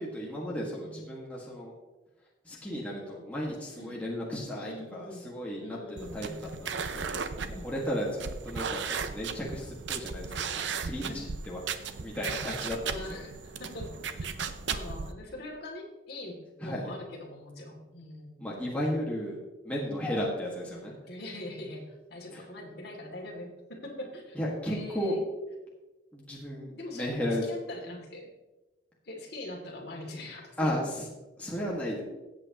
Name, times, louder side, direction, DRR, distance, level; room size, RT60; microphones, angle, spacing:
voice 1, 0.0-1.7 2.4-5.8 6.1-7.2 7.6-11.6 12.0-13.0 16.6-16.9 18.4-20.9 22.3-22.4 24.3-25.2 26.1-27.4 30.6-31.0 31.4-32.0, equal, 5° left, -5 dB, 1.7 m, -34 dB
voice 2, 4.5-5.2 5.6-6.5 7.4-7.7 10.9-11.2 12.8-13.9 14.2-14.3 14.7-18.6 19.8-20.1 21.1-24.4 24.6-25.2 26.7-28.3 29.0-30.8, left 1 dB, 55° left, -1 dB, 2.6 m, -43 dB
sound 1, 6.0-15.1, right 6 dB, 65° right, 0.6 m, -36 dB
15.5 x 8.1 x 3.0 m, 1.1 s
head